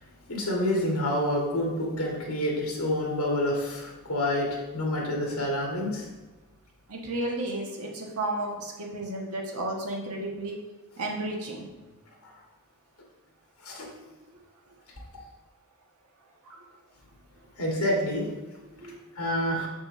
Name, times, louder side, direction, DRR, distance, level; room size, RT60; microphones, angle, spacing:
voice 1, 0.3-6.1 13.6-13.9 17.6-18.3 19.2-19.7, left 1 dB, 75° left, -2 dB, 1.9 m, -28 dB
voice 2, 6.9-10.6 11.0-11.9 16.4-16.6 18.7-18.9 19.5-19.6, right 1 dB, 90° right, 0 dB, 1.4 m, -33 dB
6.9 x 6.0 x 3.2 m, 1.2 s
head